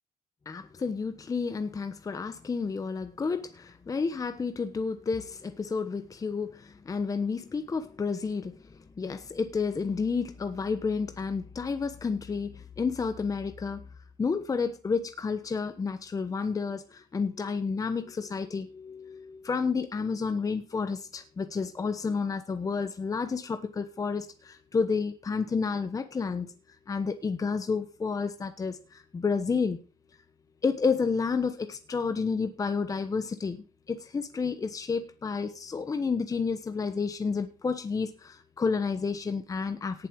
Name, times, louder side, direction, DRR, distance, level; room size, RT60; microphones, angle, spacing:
voice 1, 0.5-13.8 14.2-26.5 26.9-29.8 30.6-33.6 33.9-40.1, left 5 dB, 20° left, 1.1 m, -30 dB
18.0 x 7.5 x 4.7 m
cardioid pair, 150°, 15 cm